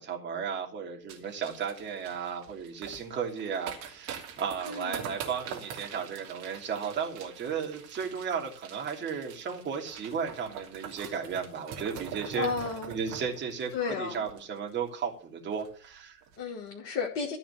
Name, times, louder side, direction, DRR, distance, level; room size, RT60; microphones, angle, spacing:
voice 1, 0.0-12.5 12.9-16.2, right 6 dB, 25° right, 0 dB, 3.1 m, -34 dB
sound 1, 1.1-14.9 15.2-15.3 15.5-15.8 16.2-16.4, right 8 dB, 40° right, 2.9 m, -44 dB
voice 2, 4.7-5.2 12.4-12.9 13.7-14.3 16.4-17.4, left 5 dB, 30° left, -1 dB, 2.5 m, -33 dB
14.0 x 4.9 x 7.9 m, 0.41 s
figure-of-eight pair, 90°, 45 cm